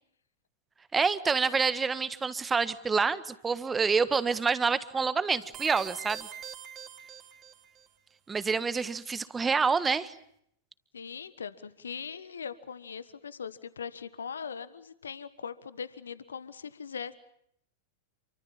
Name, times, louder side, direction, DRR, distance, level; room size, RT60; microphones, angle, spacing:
voice 1, 0.9-6.3 8.3-10.1, right 5 dB, 15° right, 15 dB, 1.6 m, -27 dB
sound 1, 5.5-7.9, right 9 dB, 30° right, 3.2 m, -43 dB
voice 2, 10.9-17.2, left 6 dB, 70° left, 16 dB, 1.4 m, -40 dB
28.5 x 24.5 x 7.3 m, 0.72 s
figure-of-eight pair, 95°, 0 cm